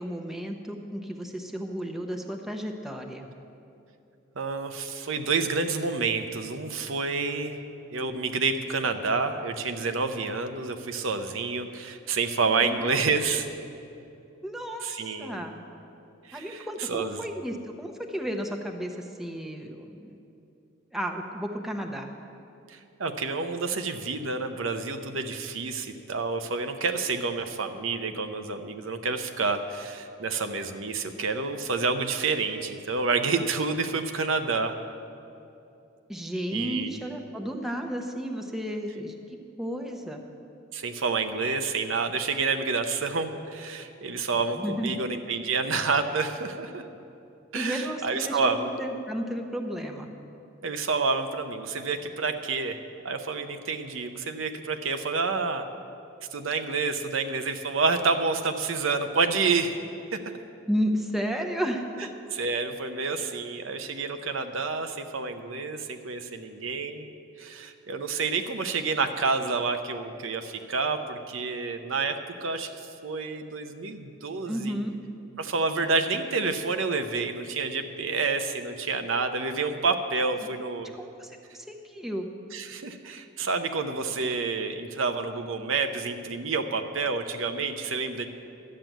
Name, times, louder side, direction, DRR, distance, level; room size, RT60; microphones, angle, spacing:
voice 1, 0.0-3.3 12.6-13.0 14.4-15.5 16.3-20.2 20.9-22.1 36.1-39.1 39.6-40.2 44.5-45.1 47.5-50.1 60.7-62.1 74.5-74.9 81.0-82.2, equal, ahead, 2 dB, 0.8 m, -33 dB
voice 2, 4.4-7.6 7.9-13.5 14.8-15.4 16.2-17.2 22.7-34.8 36.5-37.0 40.7-46.8 47.5-48.7 50.6-52.8 53.0-55.7 56.3-59.8 60.1-60.2 62.3-67.1 67.4-74.8 75.4-80.9 82.5-88.3, right 4 dB, 75° right, 7 dB, 0.8 m, -29 dB
12.0 x 7.6 x 9.1 m, 2.7 s
head